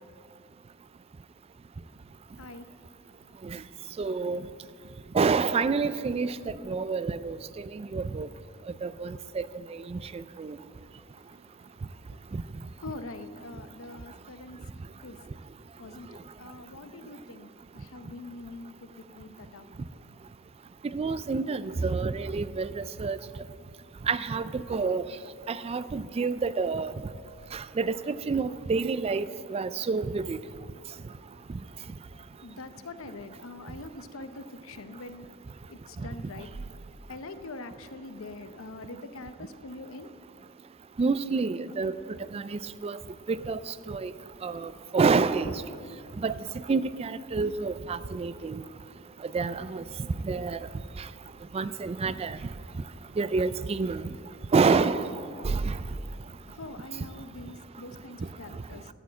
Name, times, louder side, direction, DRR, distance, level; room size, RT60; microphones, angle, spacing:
voice 1, 2.4-2.7 3.2-3.4 10.9-12.2 12.6-14.7 15.0-15.2 15.8-19.6 32.1-35.3 35.7-36.5 37.1-40.1 56.5-58.9, left 2 dB, 70° left, 10 dB, 0.7 m, -44 dB
voice 2, 4.0-4.4 5.1-6.4 6.7-7.4 7.7-8.3 8.8-9.4 9.9-10.0 10.4-10.5 20.9-23.2 24.1-25.0 25.5-26.9 27.5-30.4 41.0-41.9 42.3-43.0 43.3-43.6 43.9-44.1 44.4-45.5 46.2-46.3 46.7-48.6 49.3-49.8 50.2-50.6 51.5-52.4 53.2-54.0 54.5-55.1 55.4-55.8, right 4 dB, 30° right, 15 dB, 0.3 m, -28 dB
12.5 x 8.4 x 7.5 m, 2.5 s
head